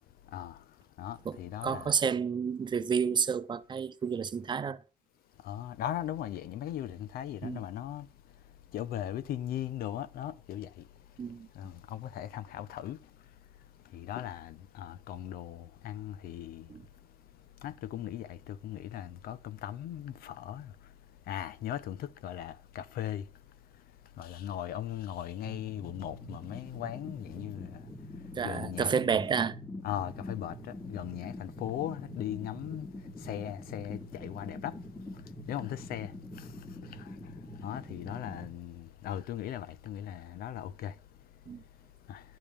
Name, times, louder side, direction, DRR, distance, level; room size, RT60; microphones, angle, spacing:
voice 1, 0.1-2.0 5.3-29.0 29.8-42.4, left 11 dB, 85° left, 0.8 m, -39 dB
voice 2, 1.6-4.8 7.4-7.6 11.2-11.5 16.7-16.8 28.4-29.6 41.5-41.6, right 6 dB, 30° right, 0.7 m, -30 dB
sound 1, 25.4-38.4, left 1 dB, 5° left, 2.0 m, -45 dB
11.5 x 5.2 x 7.0 m
cardioid pair, 150°, 15 cm